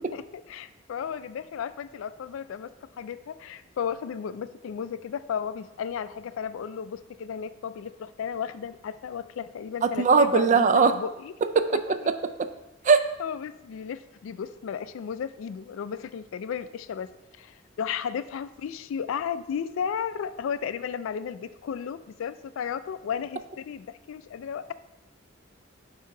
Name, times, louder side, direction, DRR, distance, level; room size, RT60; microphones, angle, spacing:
voice 1, 0.1-11.3 13.2-24.7, left 7 dB, 80° left, 14 dB, 0.3 m, -34 dB
voice 2, 9.8-10.9 11.6-12.1 12.8-13.0, right 5 dB, 35° right, 10 dB, 0.3 m, -20 dB
8.4 x 2.8 x 4.5 m, 0.94 s
head